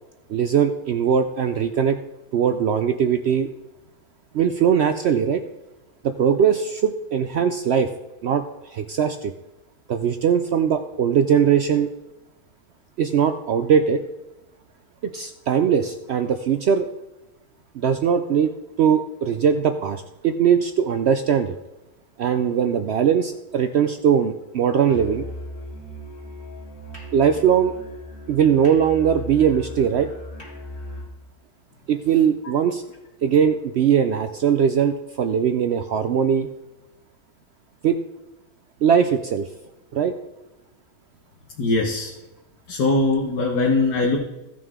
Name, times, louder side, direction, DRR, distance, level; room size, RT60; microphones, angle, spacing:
voice 1, 0.3-2.0 2.3-3.5 4.3-5.4 6.0-7.9 8.2-9.3 9.9-11.9 13.0-14.0 15.0-16.9 17.7-18.5 18.8-21.6 22.2-25.2 27.1-27.7 28.3-30.1 31.9-32.8 33.2-36.5 37.8-38.0 38.8-39.5 39.9-40.2, right 7 dB, 85° right, 8 dB, 0.5 m, -20 dB
Musical instrument, 24.9-31.2, equal, 35° left, 2.5 m, -37 dB
voice 2, 41.6-42.1 42.7-44.2, left 2 dB, 80° left, -1 dB, 1.7 m, -21 dB
15.5 x 6.1 x 3.6 m, 1.0 s
omnidirectional pair, 1.7 m